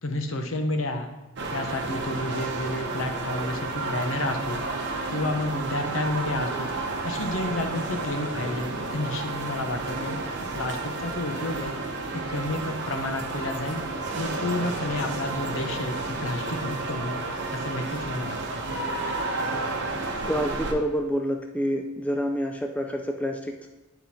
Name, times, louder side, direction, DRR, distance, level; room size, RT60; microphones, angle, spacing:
voice 1, 0.0-1.1 1.5-4.6 5.1-6.7 7.0-10.2 10.5-11.7 12.1-13.8 14.1-17.2 17.5-18.4, left 2 dB, 65° left, 5 dB, 0.8 m, -30 dB
sound 1, 1.4-20.7, right 2 dB, 55° right, 0.9 m, -31 dB
voice 2, 20.2-23.7, equal, 5° left, 3 dB, 0.3 m, -28 dB
9.5 x 3.9 x 4.2 m, 1.1 s
head